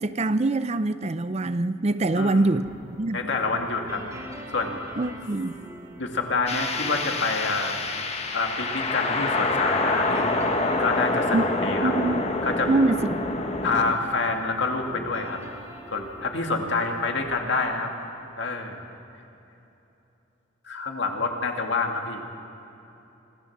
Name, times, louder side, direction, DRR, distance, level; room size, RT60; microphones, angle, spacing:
voice 1, 0.0-3.3 5.0-5.6 11.3-11.4 11.8-12.3 12.7-13.2, right 2 dB, 35° right, 13 dB, 0.5 m, -24 dB
voice 2, 2.1-2.5 3.1-4.0 4.5-4.8 6.0-7.8 8.3-10.3 10.8-11.9 12.4-12.7 13.6-15.4 15.9-17.9 18.4-18.8 20.7-22.2, left 3 dB, 60° left, 2 dB, 2.2 m, -27 dB
sound 1, 2.6-17.3, equal, 15° right, 2.9 m, -44 dB
sound 2, 6.5-13.9, left 2 dB, 30° left, 1.4 m, -26 dB
26.0 x 14.5 x 7.3 m, 2.9 s
head